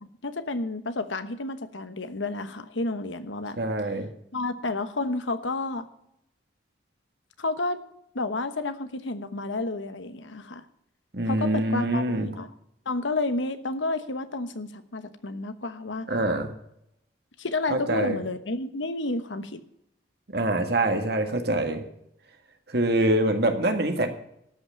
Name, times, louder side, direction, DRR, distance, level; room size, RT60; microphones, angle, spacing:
voice 1, 0.2-3.6 4.3-5.9 7.4-7.8 8.1-10.6 11.3-12.5 12.8-16.1 17.4-19.6, left 2 dB, 80° left, 11 dB, 1.1 m, -30 dB
voice 2, 3.6-4.1 11.1-12.3 16.1-16.5 17.7-18.2 20.3-21.8 22.7-24.1, right 1 dB, 55° right, 6 dB, 1.8 m, -25 dB
13.0 x 6.0 x 8.7 m, 0.77 s
head